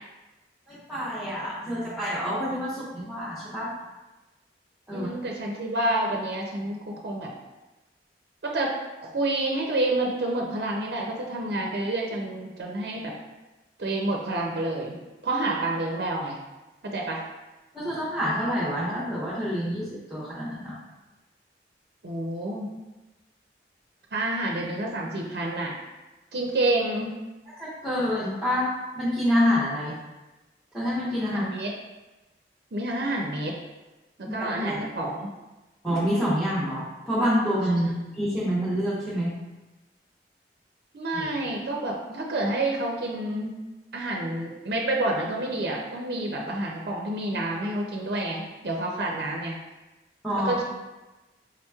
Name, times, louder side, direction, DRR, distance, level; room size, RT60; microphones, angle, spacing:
voice 1, 0.7-3.7 4.9-5.1 17.7-20.8 27.6-29.9 30.7-31.4 34.3-34.8 35.8-39.3 41.1-41.3 50.2-50.5, equal, ahead, -11 dB, 0.8 m, -27 dB
voice 2, 4.9-7.3 8.4-8.8 9.0-13.1 13.8-15.0 15.2-16.4 16.8-17.2 22.0-22.7 24.1-25.7 26.3-27.1 31.3-31.7 32.7-33.6 34.2-35.3 37.7-38.1 40.9-43.5 43.9-49.6 50.4-50.6, right 2 dB, 60° right, -1 dB, 0.5 m, -28 dB
4.8 x 2.9 x 2.3 m, 1.1 s
head